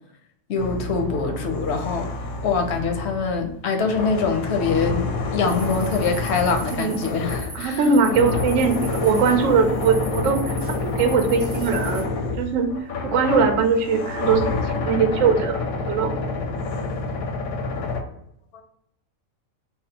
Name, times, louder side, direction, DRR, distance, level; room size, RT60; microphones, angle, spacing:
voice 1, 0.5-2.1 2.4-7.8 17.6-18.1 18.5-18.6, left 4 dB, 65° left, 4 dB, 0.7 m, -24 dB
sound 1, 0.6-18.0, left 3 dB, 80° left, 1.0 m, -28 dB
sound 2, 5.5-12.0, right 2 dB, 30° right, 0.4 m, -40 dB
voice 2, 7.5-10.5 10.8-12.7 13.0-16.1, right 5 dB, 70° right, 5 dB, 0.9 m, -21 dB
3.7 x 2.0 x 3.9 m, 0.76 s
omnidirectional pair, 1.5 m